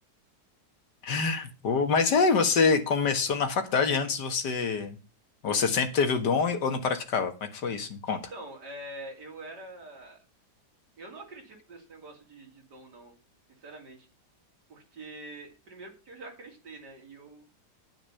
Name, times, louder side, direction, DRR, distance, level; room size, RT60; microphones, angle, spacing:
voice 1, 1.0-5.0 5.4-8.2, left 5 dB, 85° left, 7 dB, 2.2 m, -26 dB
voice 2, 8.1-10.2 11.0-13.1 13.6-14.1 14.7-17.5, right 2 dB, 85° right, 1 dB, 3.6 m, -45 dB
9.5 x 9.1 x 5.7 m, 0.32 s
omnidirectional pair, 1.8 m